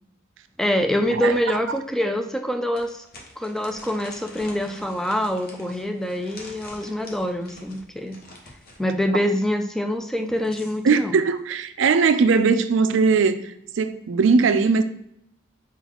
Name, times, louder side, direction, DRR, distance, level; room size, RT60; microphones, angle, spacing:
voice 1, 0.6-3.0 3.4-8.2 8.8-11.2, left 1 dB, ahead, 0.3 m, -25 dB
voice 2, 1.1-1.8 10.8-14.8, right 4 dB, 65° right, 0.4 m, -20 dB
sound 1, 1.8-1.9 2.7-8.8 10.1-11.0, left 1 dB, 50° left, 0.9 m, -46 dB
4.4 x 4.0 x 2.9 m
head